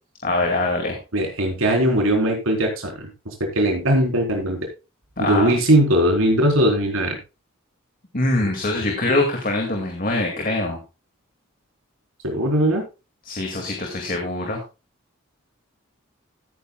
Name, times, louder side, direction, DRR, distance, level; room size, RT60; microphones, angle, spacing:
voice 1, 0.2-1.0 5.2-5.5 8.1-10.8 13.3-14.6, left 2 dB, 40° left, 2 dB, 2.2 m, -23 dB
voice 2, 1.1-3.1 3.4-4.7 5.2-7.2 12.2-12.8, right 1 dB, 70° right, 2 dB, 4.1 m, -19 dB
15.5 x 9.6 x 2.3 m, 0.28 s
head